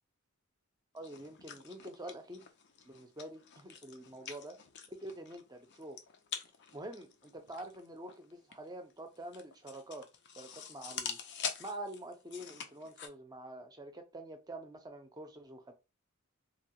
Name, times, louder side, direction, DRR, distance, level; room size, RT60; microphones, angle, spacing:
voice 1, 0.9-2.5 2.8-4.5 4.9-6.0 6.7-10.0 10.4-11.2 11.6-15.7, right 1 dB, 20° right, 0.6 m, -46 dB
sound 1, 1.0-13.1, left 7 dB, 55° left, 0.5 m, -46 dB
2.9 x 2.3 x 2.8 m
head